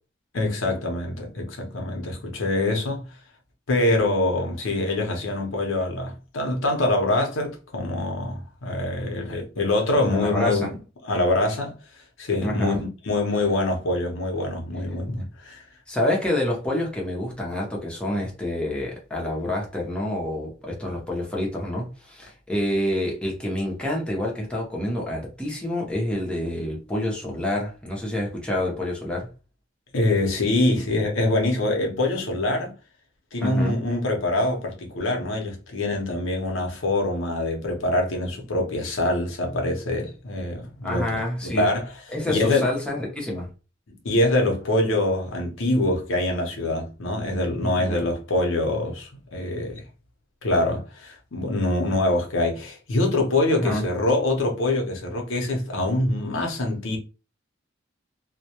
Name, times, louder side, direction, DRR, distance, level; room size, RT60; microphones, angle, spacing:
voice 1, 0.3-3.1 3.7-10.7 11.0-11.7 12.2-12.8 13.0-15.6 29.9-32.7 33.3-41.1 41.4-41.9 42.3-42.7 44.0-49.8 50.4-57.0, left 2 dB, 85° left, 0.7 m, -24 dB
voice 2, 10.1-10.7 12.4-12.8 15.9-29.3 33.4-33.8 40.8-41.7 42.1-43.5 47.6-48.1 53.5-53.9, left 1 dB, 5° left, 0.7 m, -27 dB
2.2 x 2.1 x 2.8 m
head